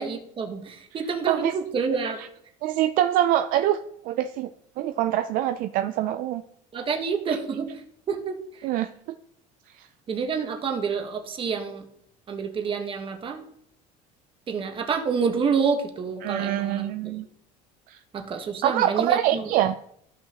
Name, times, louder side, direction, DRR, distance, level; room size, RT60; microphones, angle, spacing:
voice 1, 0.0-2.2 6.7-7.7 8.1-8.4 10.1-11.8 12.3-13.4 14.5-17.2 18.1-19.5, right 5 dB, 30° right, 4 dB, 1.3 m, -28 dB
voice 2, 2.6-3.8 4.0-4.5 4.8-6.4 8.6-8.9 9.8-9.9 16.2-17.3 17.9-18.0 18.6-19.8, right 12 dB, 60° right, 9 dB, 0.4 m, -24 dB
14.0 x 5.7 x 2.9 m, 0.72 s
cardioid pair, 125°, 16 cm